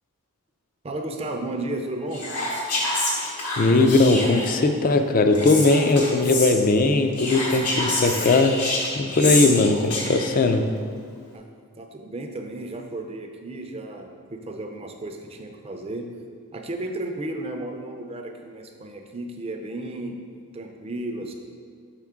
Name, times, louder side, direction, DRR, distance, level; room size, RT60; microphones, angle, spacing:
voice 1, 0.8-2.3 11.3-11.4 11.8-16.1 16.5-20.2 20.5-21.3, right 2 dB, 25° right, 4 dB, 0.5 m, -33 dB
Whispering, 2.1-4.6 5.3-6.5 7.1-10.4, left 2 dB, 90° left, 1.5 m, -27 dB
voice 2, 3.6-8.6 9.0-10.7, left 3 dB, 40° left, 7 dB, 0.4 m, -19 dB
6.2 x 5.7 x 3.6 m, 2.1 s
head